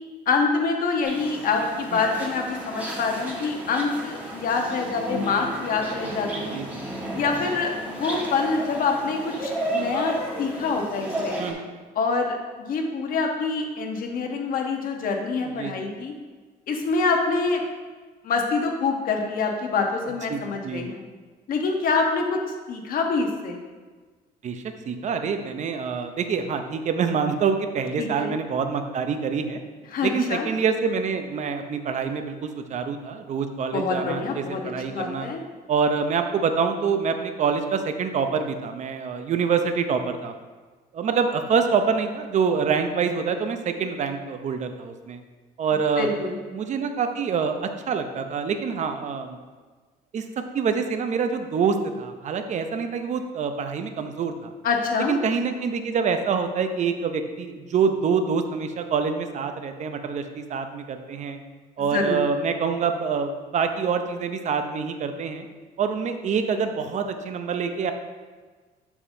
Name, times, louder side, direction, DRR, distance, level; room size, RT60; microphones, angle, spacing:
voice 1, 0.3-6.6 7.1-11.4 11.9-16.1 16.7-17.6 18.2-21.0 21.5-22.4 22.7-23.6 28.0-28.4 29.9-30.5 33.7-34.6 34.9-35.4 46.0-46.4 54.6-55.1 61.8-62.2, left 4 dB, 60° left, 3 dB, 1.1 m, -26 dB
sound 1, 1.0-11.5, right 1 dB, 10° right, 1.5 m, -33 dB
voice 2, 6.4-6.8 11.4-11.7 15.6-15.9 20.3-21.0 24.4-29.6 30.0-35.3 35.7-40.3 40.9-45.2 45.6-49.4 50.1-50.2 50.5-54.5 55.1-61.4 61.8-65.5 65.8-67.9, right 5 dB, 45° right, 7 dB, 0.7 m, -26 dB
7.1 x 6.9 x 2.7 m, 1.4 s
cardioid pair, 110°, 17 cm